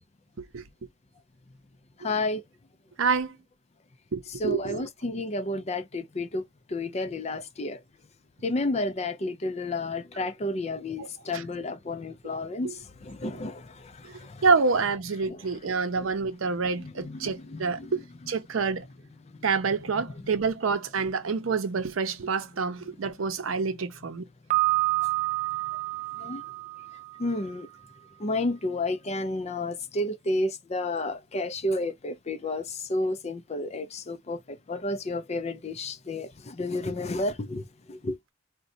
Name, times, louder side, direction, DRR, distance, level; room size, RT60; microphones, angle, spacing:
voice 1, 2.0-2.4 4.4-6.4 6.7-7.8 8.4-12.7 13.0-13.6 14.3-14.4 15.3-15.4 16.8-18.3 19.9-20.0 26.2-26.4 27.2-27.7 28.2-37.6 37.9-38.2, left 2 dB, 30° left, 0.4 m, -31 dB
voice 2, 3.0-3.3 4.1-4.9 11.0-11.1 11.3-11.4 12.6-12.7 14.4-18.8 19.4-24.2, right 4 dB, 85° right, 0.6 m, -27 dB
Piano, 24.5-27.4, right 20 dB, 35° right, 0.4 m, -28 dB
3.9 x 2.2 x 2.6 m
head